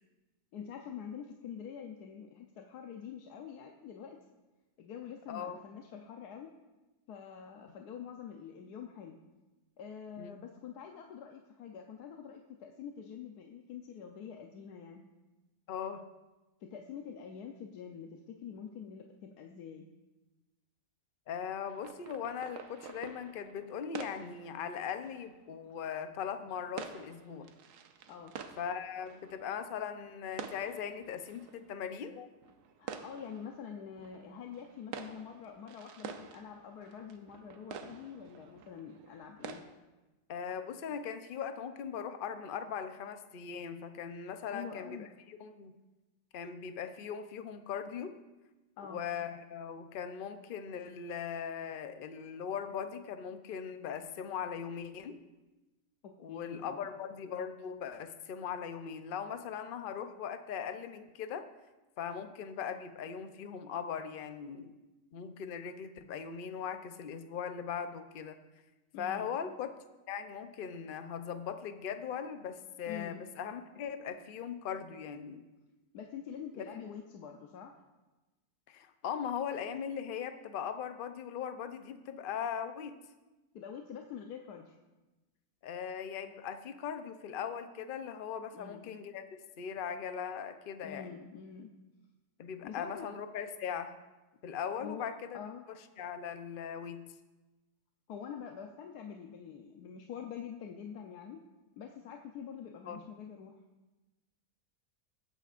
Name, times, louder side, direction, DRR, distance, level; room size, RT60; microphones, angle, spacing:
voice 1, 0.5-4.2 4.8-6.5 7.1-9.2 9.8-15.1 16.6-19.9 28.1-28.4 32.8-39.6 44.5-45.1 48.8-49.0 56.0-56.9 68.9-69.3 72.9-73.2 75.9-77.7 83.5-84.8 88.5-88.9 90.8-91.7 92.6-93.1 94.8-95.1 95.3-95.6 98.1-101.4 101.8-103.6, left 7 dB, 80° left, 2 dB, 1.3 m, -46 dB
voice 2, 15.7-16.0 21.3-27.5 28.6-32.3 40.3-45.7 46.3-48.1 48.8-55.2 56.2-61.4 62.0-64.7 65.1-68.4 69.0-69.7 70.1-75.4 76.6-76.7 78.7-83.0 85.6-89.3 89.6-91.2 92.4-93.9 94.4-95.4 95.7-97.0 102.9-103.0, left 7 dB, 55° left, 9 dB, 0.6 m, -39 dB
sound 1, 21.7-39.6, right 7 dB, 80° right, 1.3 m, -49 dB
20.5 x 9.3 x 2.5 m, 1.1 s
omnidirectional pair, 1.7 m